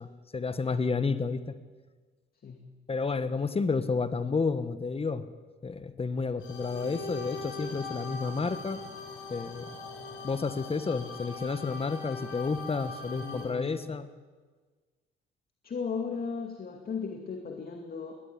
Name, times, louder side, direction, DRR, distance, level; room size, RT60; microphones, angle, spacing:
voice 1, 0.0-1.6 2.9-5.3 5.6-8.8 9.3-9.7 10.2-14.1, left 4 dB, 30° left, 12 dB, 1.4 m, -31 dB
sound 1, 6.4-13.5, left 3 dB, 80° left, 6.2 m, -41 dB
voice 2, 13.2-13.8 15.6-18.1, left 5 dB, 50° left, 4 dB, 2.5 m, -36 dB
21.5 x 17.5 x 9.7 m, 1.4 s
cardioid pair, 90°, 20 cm